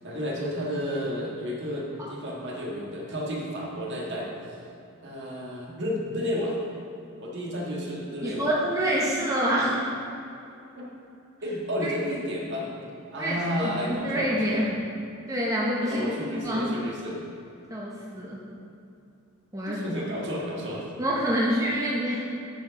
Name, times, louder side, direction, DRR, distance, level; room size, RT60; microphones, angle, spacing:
voice 1, 0.0-4.3 5.0-6.5 7.2-8.5 10.8-10.9 11.4-12.7 13.1-14.6 15.8-17.2 19.7-20.9, equal, 55° right, -3 dB, 1.7 m, -31 dB
voice 2, 8.2-9.8 11.8-11.9 13.2-14.8 15.3-16.0 16.3-16.8 17.7-18.4 19.5-19.8 21.0-22.2, equal, 15° right, -5 dB, 0.9 m, -27 dB
10.0 x 4.6 x 4.9 m, 2.7 s
head